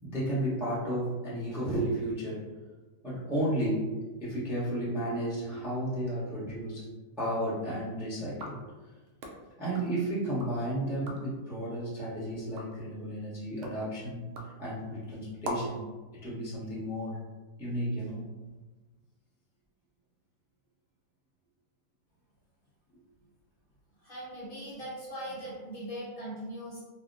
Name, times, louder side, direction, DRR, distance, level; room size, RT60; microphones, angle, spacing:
voice 1, 0.0-2.4 3.0-3.9 4.2-6.8 7.2-8.6 9.6-14.2 14.6-15.8 16.2-17.2 17.6-18.3, right 1 dB, ahead, -9 dB, 0.7 m, -33 dB
sound 1, 8.3-10.6 10.9-11.4 11.9-15.9, equal, 80° right, 0.5 m, -44 dB
voice 2, 24.0-26.8, equal, 40° left, -8 dB, 1.0 m, -40 dB
3.5 x 2.2 x 2.6 m, 1.2 s
omnidirectional pair, 1.6 m